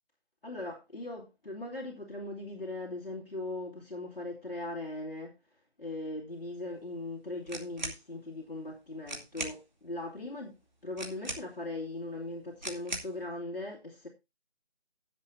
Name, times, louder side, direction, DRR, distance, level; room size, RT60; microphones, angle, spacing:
voice 1, 0.4-5.3 5.8-14.1, left 2 dB, 60° left, 2.6 m, -39 dB
sound 1, 7.4-8.0 8.7-8.8 9.0-9.6 11.0-11.7 12.6-13.2, right 2 dB, 45° right, 2.4 m, -39 dB
18.5 x 7.6 x 2.7 m
figure-of-eight pair, 175°, 32 cm